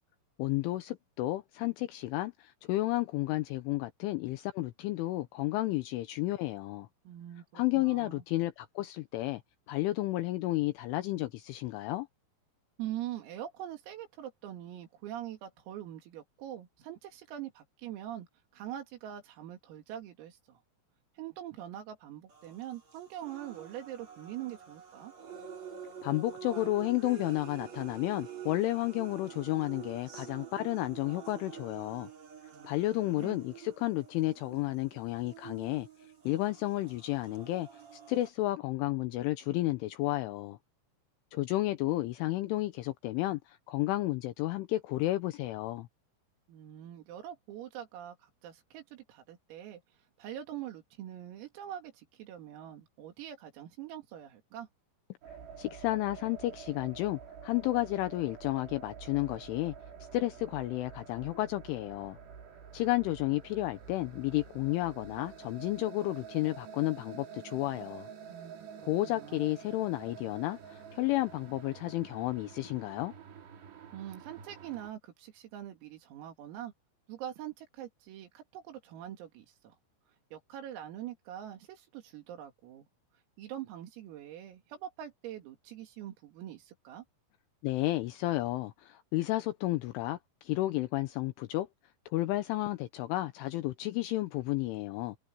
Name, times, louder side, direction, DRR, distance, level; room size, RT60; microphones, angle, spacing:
voice 1, 0.4-6.9 7.5-9.4 9.7-12.1 26.0-32.1 32.6-35.9 36.2-37.7 38.1-40.6 41.3-45.9 55.6-59.7 60.1-62.2 62.7-68.1 68.8-73.1 87.6-91.7 92.1-95.2, left 17 dB, 80° left, 3.2 m, -32 dB
voice 2, 7.1-8.2 12.8-18.3 18.5-20.6 21.2-25.1 32.5-33.4 46.5-49.8 50.2-54.7 68.3-69.4 73.9-76.7 77.1-79.8 80.3-82.9 83.4-87.1, right 11 dB, 85° right, 5.3 m, -43 dB
sound 1, 22.3-38.3, right 8 dB, 35° right, 4.8 m, -48 dB
sound 2, 55.2-74.9, right 7 dB, 55° right, 5.1 m, -49 dB
omnidirectional pair, 6.0 m